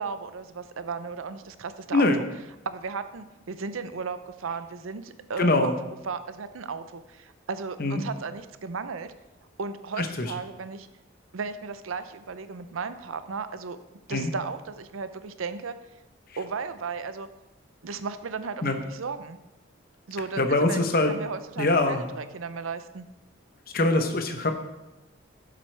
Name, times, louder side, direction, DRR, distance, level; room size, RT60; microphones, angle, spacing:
voice 1, 0.0-2.1 2.6-5.7 6.1-9.1 9.6-10.9 11.3-13.8 14.1-15.8 16.4-17.3 17.8-19.4 20.1-20.8 21.1-23.0, right 5 dB, 85° right, 11 dB, 0.6 m, -35 dB
voice 2, 5.4-5.7 7.8-8.0 10.0-10.3 14.1-14.3 18.6-18.8 20.4-21.1 21.6-22.1 23.7-24.5, left 2 dB, 45° left, 6 dB, 0.9 m, -23 dB
11.5 x 7.6 x 3.4 m, 1.0 s
head